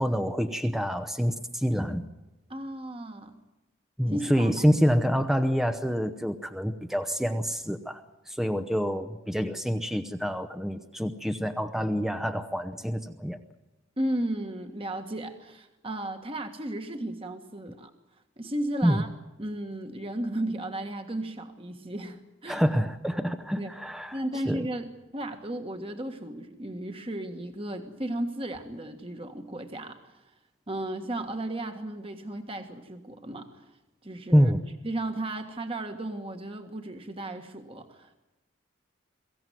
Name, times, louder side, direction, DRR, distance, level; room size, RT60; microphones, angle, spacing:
voice 1, 0.0-2.1 4.0-8.0 8.3-13.4 18.8-19.0 22.5-24.2 24.5-24.6 34.3-34.6, equal, ahead, 8 dB, 0.8 m, -26 dB
voice 2, 2.5-3.3 4.1-4.6 14.0-17.9 18.4-19.1 19.4-22.6 23.6-23.7 24.1-30.3 30.7-33.8 34.0-34.5 34.8-38.2, right 1 dB, 25° right, 6 dB, 1.6 m, -35 dB
23.0 x 16.0 x 9.2 m, 1.0 s
head